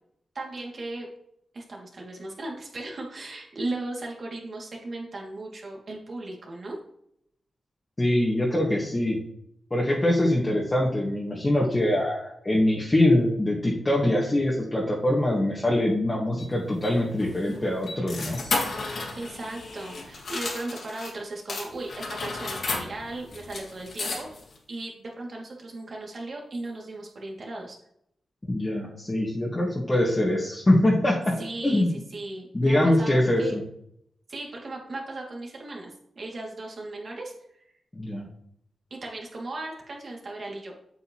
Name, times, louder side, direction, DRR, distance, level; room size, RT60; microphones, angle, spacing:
voice 1, 0.3-1.1 1.5-6.8 19.2-24.3 24.7-27.8 31.4-33.5 34.3-37.3 37.6-37.7 38.9-40.7, right 2 dB, 55° right, -1 dB, 2.5 m, -37 dB
voice 2, 8.0-9.2 9.7-18.4 28.4-31.3 31.6-31.9 32.5-33.6 37.9-38.3, left 1 dB, 25° left, -4 dB, 1.7 m, -23 dB
sound 1, 16.4-21.1 21.5-24.6, left 3 dB, 70° left, 2.7 m, -34 dB
8.4 x 7.9 x 3.1 m, 0.72 s
cardioid pair, 85°, 0 cm